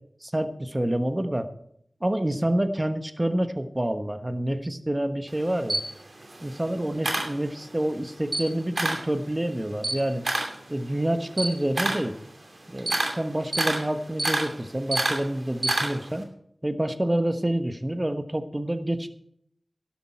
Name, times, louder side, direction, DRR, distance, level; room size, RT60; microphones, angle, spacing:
voice 1, 0.2-1.5 2.0-5.8 6.4-10.2 10.7-12.2 12.7-16.3 16.6-19.1, right 1 dB, 20° right, 9 dB, 1.2 m, -27 dB
Camera, 5.3-7.9 8.2-9.1 9.5-16.2, right 2 dB, 55° right, 2.7 m, -29 dB
12.5 x 11.5 x 4.5 m, 0.68 s
wide cardioid pair, 70°, 0 cm